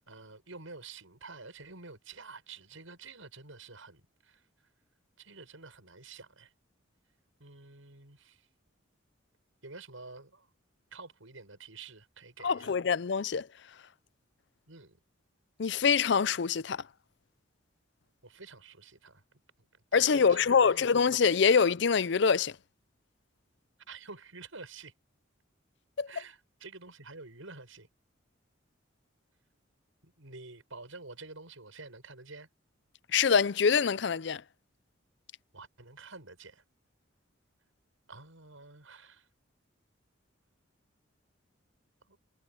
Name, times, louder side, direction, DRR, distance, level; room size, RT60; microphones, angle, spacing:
voice 1, 0.0-4.7 5.2-6.5 7.4-8.5 9.6-10.5 10.9-12.7 14.7-15.0 18.2-19.2 19.6-20.9 23.9-24.9 26.1-27.9 30.0-32.5 35.5-36.6 38.1-39.3 42.1-42.2, right 3 dB, 85° right, 6.9 m, -49 dB
voice 2, 12.4-13.5 15.6-16.8 19.9-22.5 26.0-26.1 33.1-34.4, left 6 dB, 60° left, 0.5 m, -25 dB
head